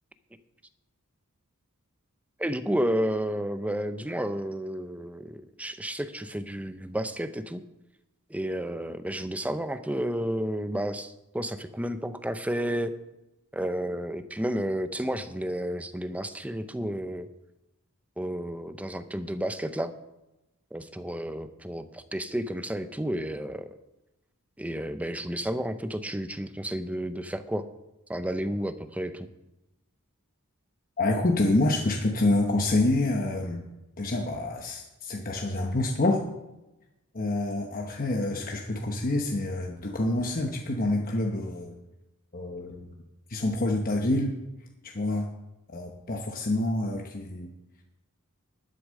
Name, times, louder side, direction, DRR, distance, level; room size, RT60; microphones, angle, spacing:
voice 1, 2.4-7.6 8.3-12.9 13.5-17.3 18.2-19.9 20.7-23.7 24.6-27.7 28.1-29.3, equal, 5° right, 10 dB, 0.6 m, -31 dB
voice 2, 31.0-33.6 34.0-36.3 37.1-41.8 42.3-43.0 43.3-44.4 44.8-45.3 45.7-47.5, left 2 dB, 40° left, 1 dB, 1.0 m, -27 dB
11.5 x 8.2 x 6.5 m, 0.97 s
head